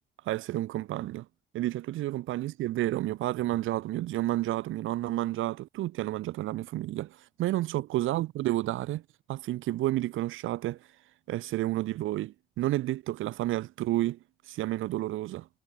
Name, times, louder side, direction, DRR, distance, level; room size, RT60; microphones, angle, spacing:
voice 1, 0.2-1.3 1.5-9.0 9.3-10.9 11.3-14.2 14.5-15.5, right 15 dB, 85° right, 1.2 m, -30 dB
cardioid pair, 90°, 20 cm